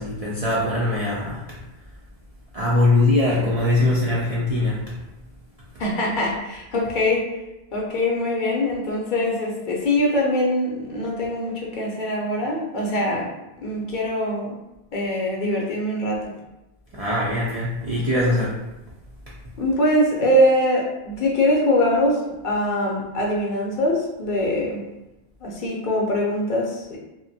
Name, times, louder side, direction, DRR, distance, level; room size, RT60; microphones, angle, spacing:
voice 1, 0.0-1.4 2.5-4.9 16.9-18.7, left 2 dB, 55° right, -7 dB, 0.4 m, -21 dB
voice 2, 5.8-7.3 7.7-13.3 13.6-14.6 14.9-16.3 19.6-24.8 25.4-27.0, left 1 dB, 60° left, -2 dB, 0.6 m, -23 dB
2.4 x 2.1 x 2.6 m, 0.96 s
omnidirectional pair, 1.1 m